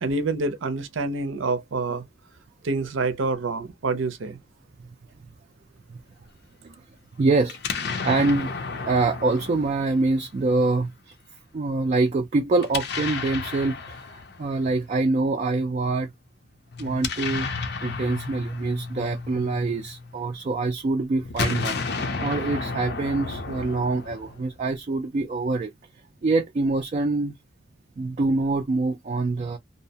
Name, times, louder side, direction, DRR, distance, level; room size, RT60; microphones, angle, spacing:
voice 1, 0.0-2.0 2.6-4.4, right 3 dB, 90° right, 0.6 m, -27 dB
voice 2, 7.2-7.6 8.0-8.5 8.9-11.1 11.5-16.1 16.8-17.5 17.8-25.7 26.2-27.3 28.0-29.6, right 3 dB, 35° right, 0.3 m, -25 dB
Explosion, 7.5-10.5 12.6-14.8 16.7-20.2 21.2-24.6, left 4 dB, 55° left, 0.5 m, -32 dB
2.7 x 2.0 x 2.7 m
head